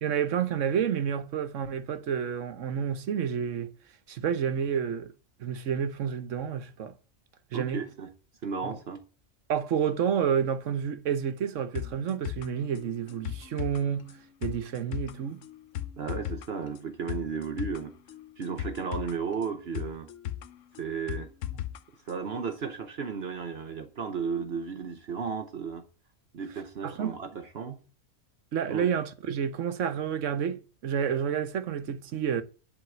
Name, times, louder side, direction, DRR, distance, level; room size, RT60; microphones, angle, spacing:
voice 1, 0.0-3.7 4.1-5.1 5.4-6.9 7.5-7.8 8.6-8.8 9.5-15.4 26.8-27.2 28.5-32.4, right 8 dB, 80° right, 1.2 m, -29 dB
voice 2, 7.5-8.1 8.4-9.0 16.0-17.9 18.4-20.1 20.8-21.3 22.1-25.8 26.3-27.8 28.7-28.9, right 6 dB, 55° right, 1.1 m, -34 dB
sound 1, 11.7-21.8 22.1-22.2, left 12 dB, 80° left, 1.1 m, -38 dB
11.0 x 4.2 x 7.8 m
omnidirectional pair, 1.3 m